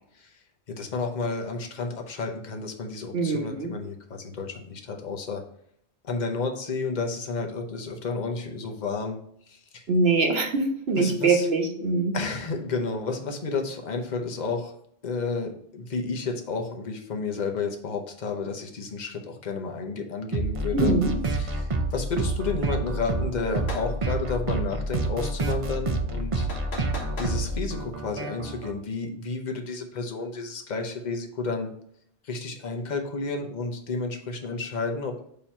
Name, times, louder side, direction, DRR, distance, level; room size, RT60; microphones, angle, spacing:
voice 1, 0.1-5.4 6.0-9.2 9.4-9.8 11.0-11.5 12.1-14.7 15.0-21.0 21.3-26.5 27.2-31.7 32.2-35.2, left 4 dB, 45° left, 3 dB, 1.0 m, -31 dB
voice 2, 3.1-3.7 9.9-12.1 20.7-21.1, right 3 dB, 70° right, 2 dB, 1.4 m, -23 dB
sound 1, 20.3-28.7, right 2 dB, 35° right, 0.6 m, -28 dB
sound 2, 23.6-23.9 26.5-27.4, left 1 dB, 70° left, 1.5 m, -37 dB
6.8 x 2.9 x 5.4 m, 0.67 s
omnidirectional pair, 1.1 m